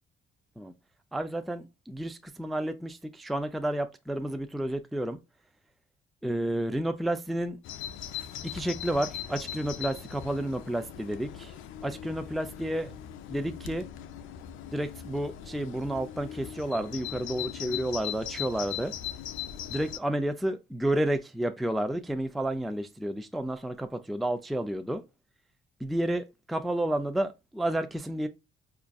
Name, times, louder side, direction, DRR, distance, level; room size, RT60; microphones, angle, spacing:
voice 1, 1.1-5.2 6.2-7.6 8.4-11.5 11.8-12.9 13.3-13.9 14.7-18.9 19.7-25.0 25.8-28.3, right 1 dB, ahead, 0.3 m, -31 dB
Bird vocalization bird call bird song, 7.6-20.0, left 10 dB, 85° left, 0.4 m, -40 dB
4.6 x 2.5 x 2.3 m
cardioid pair, 90°, 20 cm